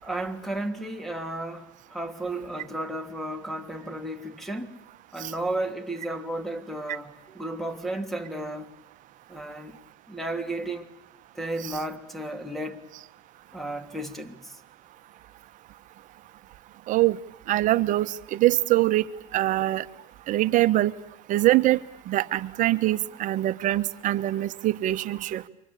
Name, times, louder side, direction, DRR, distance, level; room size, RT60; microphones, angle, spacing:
voice 1, 0.0-4.8 5.1-8.7 9.3-9.8 10.1-10.9 11.3-12.8 13.5-14.6, right 1 dB, ahead, 3.1 m, -33 dB
voice 2, 16.9-17.2 17.5-19.0 19.3-19.8 20.3-20.9 21.3-21.8 22.1-25.4, right 15 dB, 45° right, 1.2 m, -23 dB
28.0 x 25.0 x 8.6 m
supercardioid pair, 125°, 18 cm